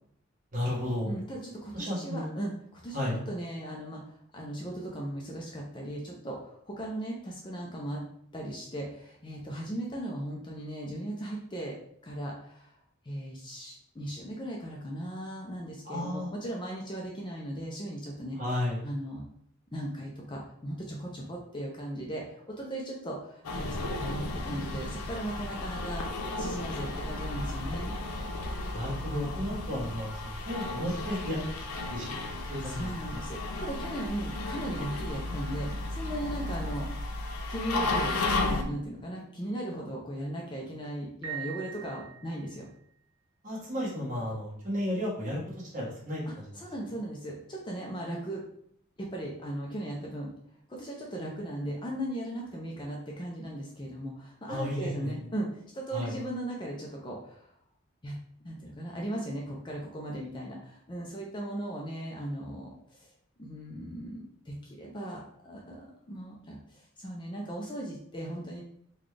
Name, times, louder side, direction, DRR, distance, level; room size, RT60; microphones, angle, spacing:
voice 1, 0.5-1.1 1.7-2.3 2.9-3.2 15.8-16.3 18.4-18.8 28.7-31.4 31.9-32.9 43.4-46.2 46.5-46.6 54.5-55.2 55.9-56.1, left 1 dB, 40° right, -5 dB, 1.3 m, -33 dB
voice 2, 1.1-8.0 8.3-11.8 12.0-12.7 13.0-18.4 18.8-19.2 19.7-26.1 26.4-27.9 32.6-36.9 37.5-38.2 38.4-42.7 46.2-48.4 49.0-50.3 50.7-57.5 58.0-58.1 58.4-63.1 63.4-68.6, right 1 dB, 20° left, -1 dB, 0.5 m, -37 dB
sound 1, 23.4-38.6, left 2 dB, 85° left, 0.5 m, -34 dB
Piano, 41.2-42.7, right 9 dB, 80° right, 1.3 m, -41 dB
3.9 x 2.3 x 3.2 m, 0.66 s
head